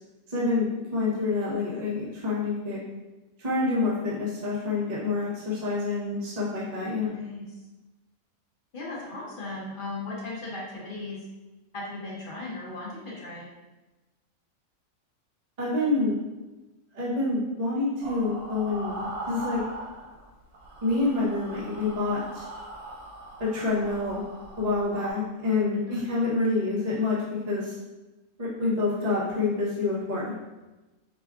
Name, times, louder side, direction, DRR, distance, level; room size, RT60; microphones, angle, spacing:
voice 1, 0.3-2.8 3.4-7.1 15.6-16.2 16.9-19.0 19.3-19.6 20.8-22.4 23.4-24.2 24.6-27.7 28.4-30.3, left 3 dB, 35° right, -7 dB, 0.9 m, -27 dB
voice 2, 7.0-7.4 8.7-11.2 11.7-13.5 25.9-26.2, left 2 dB, 45° left, -4 dB, 0.8 m, -37 dB
sound 1, 18.0-20.3 20.5-25.1, right 2 dB, 90° right, 1.3 m, -40 dB
5.1 x 2.3 x 2.3 m, 1.1 s
omnidirectional pair, 1.5 m